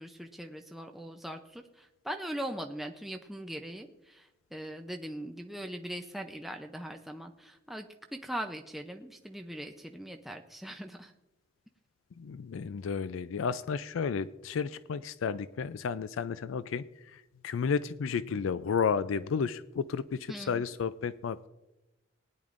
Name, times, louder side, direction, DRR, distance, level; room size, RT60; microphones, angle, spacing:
voice 1, 0.0-11.1 20.3-20.6, right 1 dB, ahead, 3 dB, 0.5 m, -41 dB
voice 2, 12.2-21.5, left 6 dB, 80° left, 15 dB, 0.4 m, -32 dB
19.5 x 10.5 x 2.5 m, 0.96 s
head